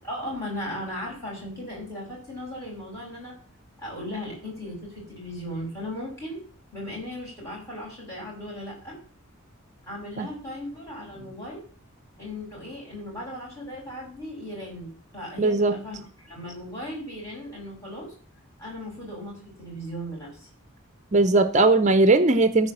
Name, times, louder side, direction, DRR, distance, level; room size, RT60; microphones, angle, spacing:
voice 1, 0.0-3.3 3.8-6.4 6.7-9.0 9.8-11.6 12.2-18.1 18.6-20.5, left 1 dB, 15° left, -5 dB, 6.2 m, -37 dB
voice 2, 15.4-15.7 21.1-22.7, right 2 dB, 35° right, 11 dB, 0.6 m, -19 dB
13.5 x 4.9 x 7.4 m, 0.41 s
head